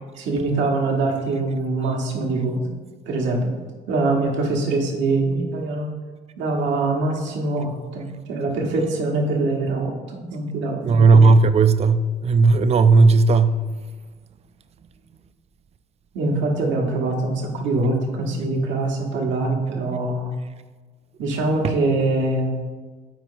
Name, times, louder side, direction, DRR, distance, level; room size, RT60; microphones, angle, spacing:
voice 1, 0.2-2.6 3.1-3.5 3.9-5.9 6.4-10.8 16.1-20.3 21.2-22.5, right 2 dB, 75° right, 0 dB, 1.3 m, -23 dB
voice 2, 10.9-13.6, right 3 dB, 35° right, 11 dB, 0.4 m, -14 dB
4.6 x 4.5 x 5.4 m, 1.4 s
supercardioid pair, 65°, 19 cm